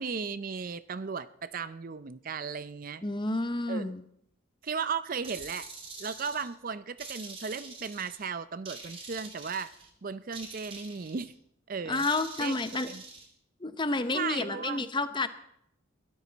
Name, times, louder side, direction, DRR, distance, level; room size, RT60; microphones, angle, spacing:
voice 1, 0.0-3.0 3.7-3.9 4.6-5.7 6.0-9.7 10.0-11.3 11.7-12.1 12.4-12.5 12.9-13.0 14.1-14.9, right 5 dB, 40° right, 15 dB, 0.5 m, -36 dB
voice 2, 3.0-4.0 11.9-12.9 13.6-15.3, left 3 dB, 25° left, 11 dB, 0.8 m, -30 dB
sound 1, 5.2-6.5 7.0-8.2 8.7-9.9 10.3-11.3 11.9-13.3, right 4 dB, 25° right, 2.3 m, -45 dB
22.0 x 12.5 x 4.1 m, 0.74 s
head